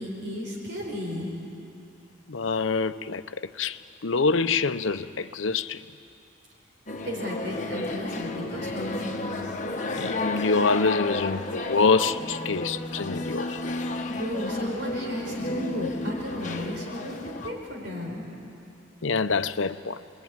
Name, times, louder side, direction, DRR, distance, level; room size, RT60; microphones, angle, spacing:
voice 1, 0.0-1.3 7.0-9.1 14.1-18.2, left 1 dB, 60° right, 4.9 m, -33 dB
voice 2, 2.3-5.8 10.0-13.6 15.8-15.9 19.0-20.0, left 4 dB, 90° left, 0.8 m, -26 dB
music Session, 6.9-17.5, left 2 dB, 40° left, 1.4 m, -32 dB
29.0 x 21.0 x 9.7 m
head